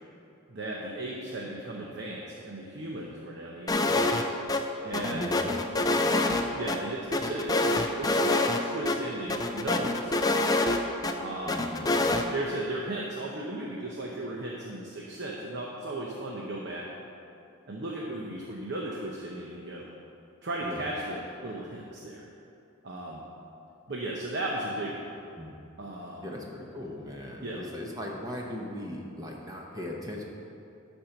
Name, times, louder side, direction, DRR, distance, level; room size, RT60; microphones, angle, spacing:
voice 1, 0.5-3.8 4.8-5.3 6.6-10.6 11.2-11.7 12.3-16.9 17.7-19.8 20.4-22.3 22.8-23.2 23.9-25.1 25.8-26.3 27.4-27.6, right 1 dB, 55° right, -2 dB, 0.8 m, -36 dB
sound 1, 3.7-4.2 4.5-4.6 4.9-6.8 7.1-8.6 8.9-9.0 9.3-11.1 11.5-12.2, left 2 dB, 15° left, 0.4 m, -26 dB
voice 2, 3.7-4.0 5.1-5.6 5.9-6.6 11.5-11.9 20.6-20.9 25.4-25.6 26.2-30.2, left 1 dB, 15° right, -1 dB, 0.8 m, -39 dB
11.5 x 4.5 x 5.8 m, 2.7 s
head